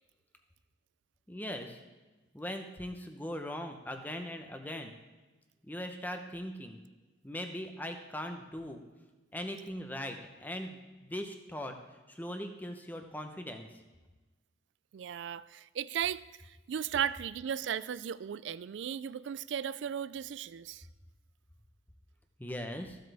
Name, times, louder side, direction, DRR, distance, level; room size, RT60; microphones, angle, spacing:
voice 1, 1.3-1.8 2.3-4.9 5.6-6.8 7.2-8.8 9.3-11.8 12.1-13.7 22.4-23.0, left 1 dB, 10° left, 0.8 m, -40 dB
voice 2, 14.9-20.9, right 8 dB, 75° right, 0.3 m, -36 dB
14.5 x 7.8 x 3.4 m
head